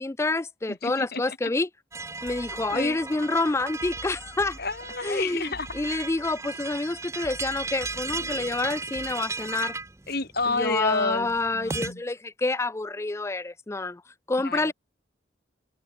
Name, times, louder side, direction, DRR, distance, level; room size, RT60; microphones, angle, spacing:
voice 1, 0.0-1.7 2.2-4.6 5.0-9.7 10.5-14.0 14.3-14.7, left 2 dB, 15° left, 0.3 m, -28 dB
voice 2, 0.7-1.5 2.2-2.3 2.7-3.0 4.6-5.7 10.1-12.0 14.4-14.7, left 3 dB, 50° left, 5.2 m, -30 dB
sound 1, 1.9-11.9, right 4 dB, 15° right, 0.7 m, -36 dB
sound 2, 2.3-3.2 3.8-5.2 5.5-6.6 7.2-9.1, equal, 50° right, 6.6 m, -48 dB
sound 3, 8.1-9.2, left 1 dB, 75° left, 5.6 m, -49 dB
open air
head